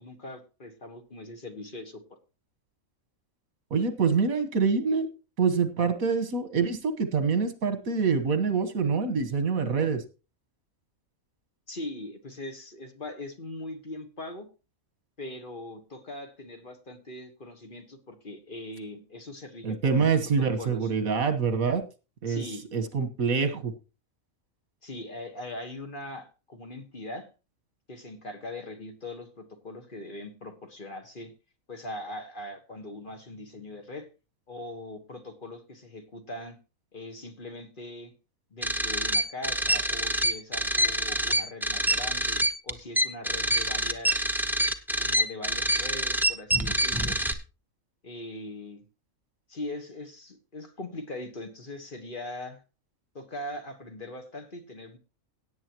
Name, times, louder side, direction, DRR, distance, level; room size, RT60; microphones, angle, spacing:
voice 1, 0.0-2.0 11.7-14.5 15.2-20.9 22.3-22.7 24.8-27.3 27.9-31.3 31.7-34.1 34.5-36.6 36.9-38.1 38.5-44.3 45.0-47.2 48.0-48.8 49.5-52.6 53.1-55.0, left 1 dB, 40° left, 5 dB, 1.5 m, -41 dB
voice 2, 3.7-5.1 5.4-10.0 19.6-21.8 22.2-22.4 22.7-23.7, right 5 dB, 80° right, 9 dB, 1.8 m, -25 dB
sound 1, 38.6-47.3, right 1 dB, ahead, 0.6 m, -26 dB
17.5 x 8.7 x 3.0 m, 0.32 s
omnidirectional pair, 1.5 m